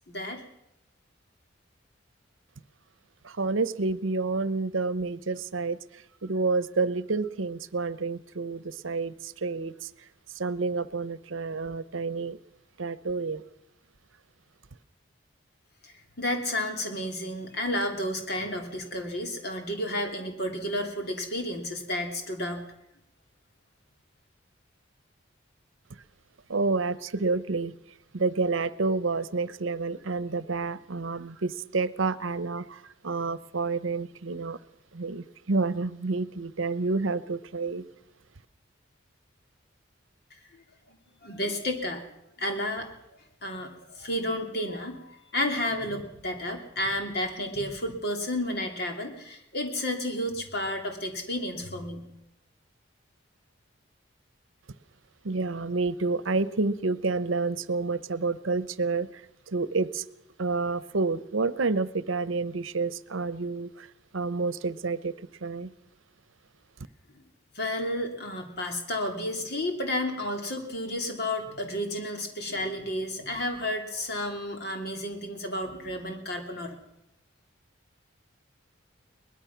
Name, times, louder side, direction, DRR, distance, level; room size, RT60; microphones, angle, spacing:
voice 1, 0.1-0.4 15.8-22.7 40.5-40.6 40.9-41.0 41.2-42.0 42.4-42.9 43.4-52.1 67.5-76.8, left 1 dB, 50° left, 4 dB, 3.0 m, -31 dB
voice 2, 3.2-5.8 6.2-9.9 10.4-12.4 12.8-13.4 26.5-27.7 28.1-34.6 34.9-37.8 55.2-59.1 59.5-60.0 60.4-63.9 64.1-65.1 65.4-65.7, right 3 dB, 80° right, 16 dB, 0.8 m, -29 dB
22.5 x 20.0 x 5.9 m, 0.80 s
head